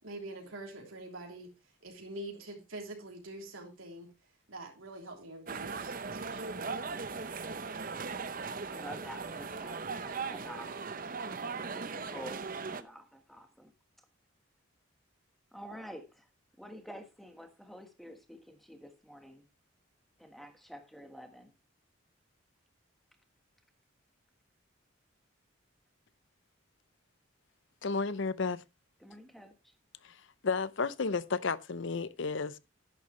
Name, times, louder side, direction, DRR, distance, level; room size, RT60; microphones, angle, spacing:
voice 1, 0.0-1.5 1.8-4.1 4.5-6.6, right 1 dB, 80° right, 3.2 m, -45 dB
sound 1, 5.5-12.8, right 4 dB, 40° right, 0.7 m, -38 dB
voice 2, 8.7-10.8 11.7-13.7 15.5-16.3 16.6-19.4 20.2-21.5 29.0-29.7, equal, ahead, 1.4 m, -49 dB
voice 3, 27.8-28.6 30.0-30.2 30.4-32.6, left 4 dB, 65° left, 0.6 m, -32 dB
10.5 x 10.5 x 3.2 m
head